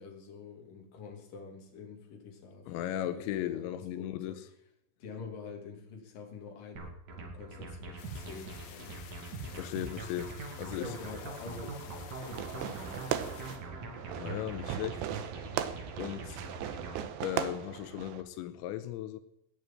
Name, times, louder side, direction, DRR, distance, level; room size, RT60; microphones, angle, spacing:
voice 1, 0.0-4.4 5.0-9.0 9.4-9.7 10.7-13.0, left 4 dB, 50° left, 4.0 m, -47 dB
voice 2, 2.7-4.4 9.5-10.9 14.1-15.0 16.0-16.4 17.2-19.2, left 12 dB, 90° left, 3.2 m, -37 dB
sound 1, 6.8-17.1, right 3 dB, 45° right, 3.4 m, -43 dB
sound 2, 8.0-13.6, left 8 dB, 70° left, 3.7 m, -51 dB
Fireworks, 12.2-18.2, right 11 dB, 80° right, 3.0 m, -38 dB
18.5 x 6.7 x 9.0 m
omnidirectional pair, 5.2 m